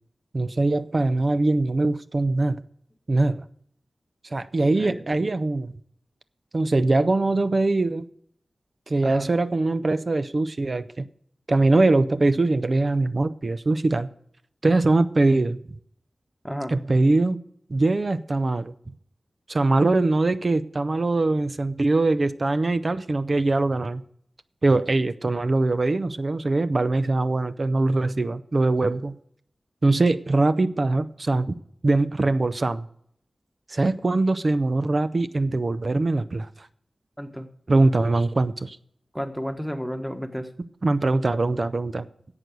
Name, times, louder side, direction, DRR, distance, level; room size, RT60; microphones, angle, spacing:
voice 1, 0.3-2.6 3.1-3.4 4.3-5.7 6.5-8.1 8.9-11.0 11.5-14.1 14.6-15.6 16.7-17.4 17.7-18.7 19.5-24.0 24.6-29.2 29.8-31.5 31.8-32.9 33.7-36.5 37.7-38.8 40.8-42.1, right 2 dB, 45° right, 0.6 m, -22 dB
voice 2, 4.6-5.3 9.0-9.3 16.4-16.8 37.2-37.5 39.1-40.5, equal, ahead, 1.3 m, -32 dB
11.0 x 7.9 x 6.8 m
wide cardioid pair, 75°, 0 cm